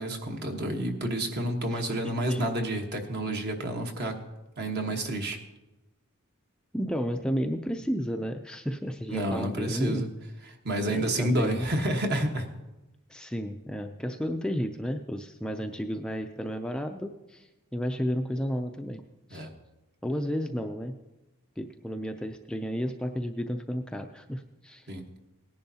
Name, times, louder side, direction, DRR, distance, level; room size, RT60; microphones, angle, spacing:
voice 1, 0.0-4.2 4.6-5.4 9.1-10.1 10.6-12.5 19.3-19.5 24.9-25.0, right 1 dB, 50° right, 4 dB, 1.3 m, -29 dB
voice 2, 6.7-10.0 10.9-11.7 13.1-19.0 19.3-19.5 20.0-20.9 21.6-24.9, equal, 5° left, 4 dB, 0.4 m, -32 dB
18.0 x 10.5 x 2.8 m, 1.0 s
head